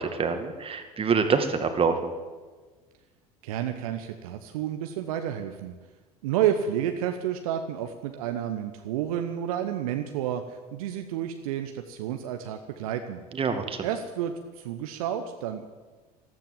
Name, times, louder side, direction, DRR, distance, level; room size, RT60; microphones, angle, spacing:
voice 1, 0.0-2.1 13.3-13.9, right 5 dB, 30° right, 7 dB, 2.1 m, -26 dB
voice 2, 3.4-5.7 6.2-13.2 13.8-15.7, right 10 dB, 65° right, 7 dB, 1.0 m, -30 dB
14.0 x 13.5 x 7.5 m, 1.3 s
figure-of-eight pair, 65°, 20 cm